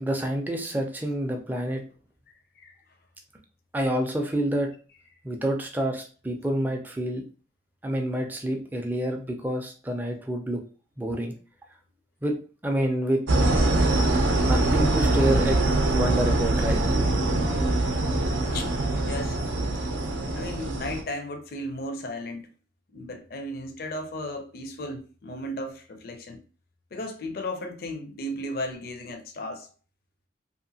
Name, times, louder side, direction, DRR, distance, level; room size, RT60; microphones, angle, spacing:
voice 1, 0.0-1.8 3.7-4.7 5.2-7.2 7.8-10.6 11.0-11.3 12.2-12.4 12.6-13.2 14.4-15.6 15.9-16.8, right 1 dB, 10° right, 0.4 m, -27 dB
sound 1, 13.3-21.0, right 2 dB, 80° right, 0.6 m, -23 dB
voice 2, 18.4-18.7 19.0-19.4 20.3-22.5 22.9-26.4 26.9-29.7, left 1 dB, 50° left, 0.4 m, -35 dB
2.8 x 2.4 x 2.7 m
head